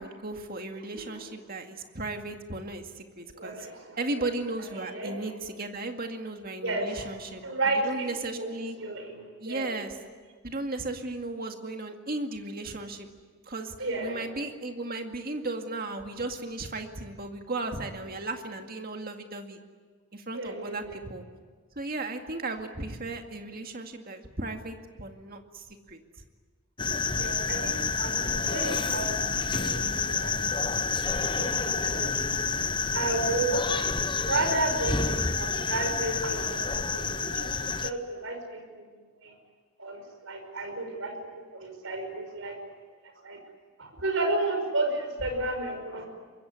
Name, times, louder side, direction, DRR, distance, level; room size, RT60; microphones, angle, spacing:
voice 1, 0.0-3.6 4.0-7.4 7.8-8.8 9.4-10.0 10.4-13.1 13.5-13.7 14.0-19.6 20.1-21.2 21.8-26.0, right 2 dB, 45° right, 4 dB, 2.1 m, -35 dB
voice 2, 3.3-4.2 4.9-5.2 6.6-7.0 7.4-9.8 13.8-14.3 20.3-21.0 27.2-29.2 29.5-30.8 31.4-32.4 32.9-34.0 34.2-38.8 39.2-39.3 39.8-41.1 41.5-42.6 43.2-43.4 43.8-46.1, right 2 dB, 65° right, 5 dB, 5.8 m, -32 dB
sound 1, 26.8-37.9, left 5 dB, 20° left, 0.7 m, -29 dB
24.5 x 22.0 x 9.7 m, 1.5 s
head